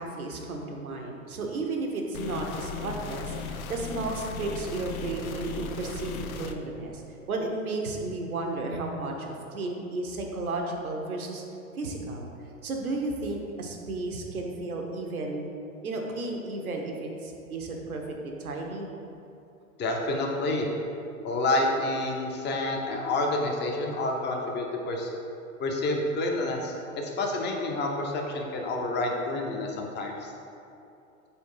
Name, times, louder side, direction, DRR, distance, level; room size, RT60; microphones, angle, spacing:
voice 1, 0.0-7.0 7.3-11.4 11.8-12.3 12.6-15.5 15.8-18.9, right 2 dB, 85° right, 1 dB, 1.0 m, -33 dB
sound 1, 2.1-6.5, left 5 dB, 80° left, 0.6 m, -37 dB
voice 2, 19.8-20.7 21.2-25.1 25.6-30.3, left 2 dB, 25° left, 1 dB, 0.9 m, -29 dB
4.5 x 4.3 x 5.5 m, 2.8 s
hypercardioid pair, 100°, 42 cm